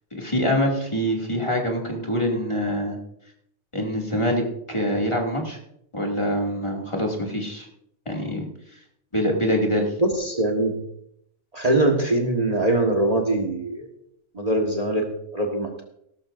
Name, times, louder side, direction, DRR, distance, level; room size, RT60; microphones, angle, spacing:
voice 1, 0.1-3.0 3.7-5.6 5.9-7.7 8.1-8.5 9.1-9.9, equal, 25° left, 0 dB, 2.4 m, -25 dB
voice 2, 10.0-10.8 11.5-13.9 14.3-15.8, right 2 dB, 30° right, 2 dB, 1.5 m, -22 dB
18.0 x 12.5 x 2.6 m, 0.75 s
omnidirectional pair, 1.3 m